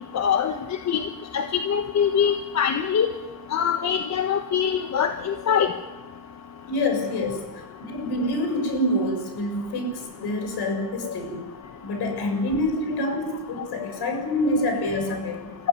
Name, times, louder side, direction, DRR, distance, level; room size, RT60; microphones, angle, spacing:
voice 1, 0.1-0.5 0.9-1.0 1.3-3.1 3.5-5.7, left 8 dB, 35° left, 6 dB, 1.2 m, -23 dB
voice 2, 6.7-11.5 11.8-15.6, left 1 dB, 50° left, 5 dB, 7.2 m, -27 dB
23.0 x 15.0 x 9.8 m, 1.2 s
cardioid pair, 130°, 49 cm